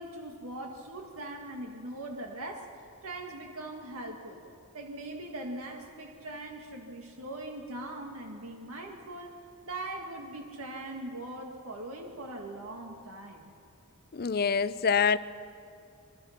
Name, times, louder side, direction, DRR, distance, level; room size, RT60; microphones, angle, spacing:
voice 1, 0.0-2.7 3.0-4.4 4.7-9.4 9.6-13.5, right 1 dB, 75° right, 2 dB, 1.9 m, -41 dB
voice 2, 14.1-15.2, left 6 dB, 45° left, 15 dB, 0.5 m, -25 dB
26.0 x 22.5 x 5.9 m, 2.6 s
head